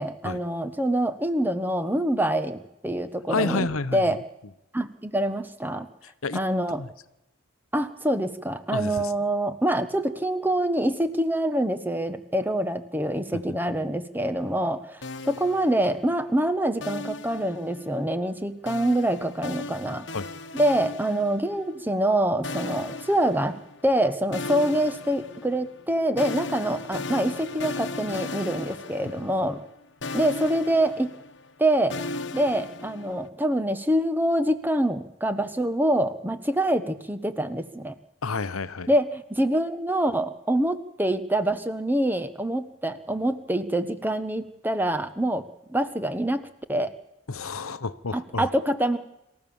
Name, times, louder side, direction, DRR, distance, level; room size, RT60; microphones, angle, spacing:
voice 1, 0.0-4.2 4.7-5.9 6.3-6.8 7.7-20.1 20.5-29.6 30.1-31.1 31.6-32.0 32.3-37.9 38.9-46.9 48.1-49.0, right 1 dB, 10° right, 10 dB, 1.2 m, -25 dB
voice 2, 3.3-4.0 6.2-6.4 6.8-6.9 8.7-9.1 20.1-20.3 29.0-29.1 38.2-38.9 47.3-48.5, left 4 dB, 85° left, 15 dB, 1.0 m, -29 dB
sound 1, 15.0-16.3 16.8-18.0 18.7-21.8 22.4-24.0 24.3-29.8 30.0-33.3, left 3 dB, 55° left, 1.3 m, -37 dB
26.5 x 14.5 x 7.1 m, 0.88 s
head